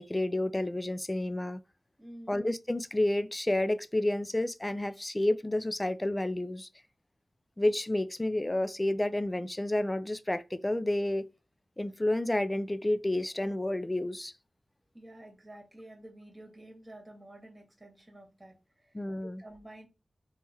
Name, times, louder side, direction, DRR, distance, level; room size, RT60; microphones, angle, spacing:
voice 1, 0.0-1.6 2.3-6.7 7.6-11.3 11.8-14.3 18.9-19.4, left 1 dB, 15° left, 0.3 m, -30 dB
voice 2, 2.0-2.4 14.9-19.9, right 1 dB, 20° right, 1.5 m, -50 dB
3.7 x 3.0 x 2.8 m
wide cardioid pair, 100°, 0 cm